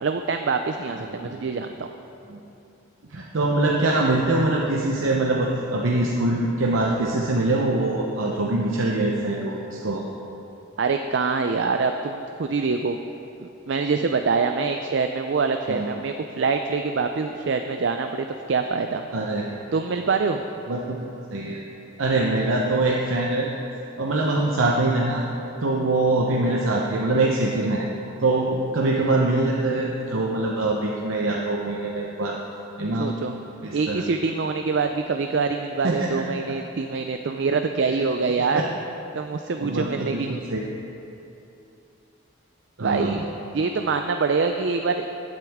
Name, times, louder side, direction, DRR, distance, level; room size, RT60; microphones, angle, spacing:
voice 1, 0.0-1.9 10.8-13.0 13.4-19.1 19.7-20.4 33.0-33.3 33.7-38.7 39.1-40.3 42.8-43.3 43.5-45.1, right 4 dB, 60° right, 6 dB, 0.4 m, -25 dB
voice 2, 3.1-10.0 15.7-15.9 19.1-19.5 20.7-21.6 22.0-23.5 24.0-25.2 25.6-27.9 28.2-32.4 32.8-33.1 33.6-34.1 35.8-36.1 38.5-38.6 39.6-40.6 42.8-43.2, right 2 dB, 85° right, -2 dB, 0.9 m, -23 dB
15.0 x 9.1 x 3.6 m, 2.8 s
head